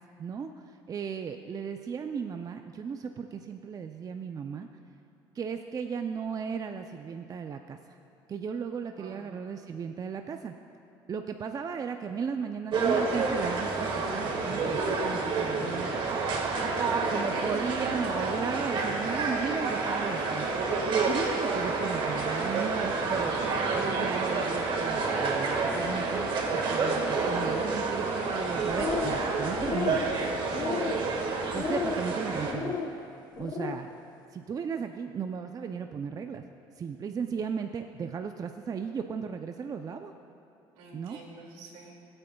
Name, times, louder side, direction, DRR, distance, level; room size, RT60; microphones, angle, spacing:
voice 1, 0.2-4.7 5.3-7.8 8.3-10.5 11.1-16.0 16.4-20.5 21.1-23.3 23.7-30.0 31.5-32.8 33.4-33.9 34.3-36.4 36.8-40.1 40.9-41.2, right 6 dB, 35° right, 6 dB, 0.5 m, -35 dB
sound 1, 12.7-32.5, right 4 dB, 55° right, 1.7 m, -29 dB
voice 2, 16.8-17.3 30.7-31.1 40.7-41.9, right 3 dB, 80° right, -1 dB, 2.4 m, -46 dB
sound 2, 28.6-29.3 29.5-30.1 30.5-31.1 31.5-32.0 32.4-32.9 33.3-33.8, left 5 dB, 40° left, 1.0 m, -33 dB
20.5 x 8.8 x 2.3 m, 2.9 s
supercardioid pair, 85°, 10 cm